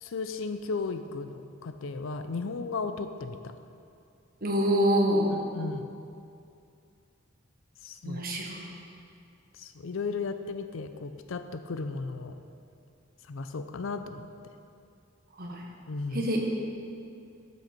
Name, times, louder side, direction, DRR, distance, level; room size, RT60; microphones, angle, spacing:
voice 1, 0.0-3.5 5.3-5.9 7.8-8.2 9.6-12.4 13.3-14.3 15.9-16.3, left 4 dB, 70° left, 9 dB, 0.5 m, -35 dB
voice 2, 4.4-5.3 8.0-8.6 15.4-15.6 16.1-16.4, equal, 50° right, 0 dB, 1.4 m, -26 dB
13.0 x 6.3 x 4.4 m, 2.5 s
head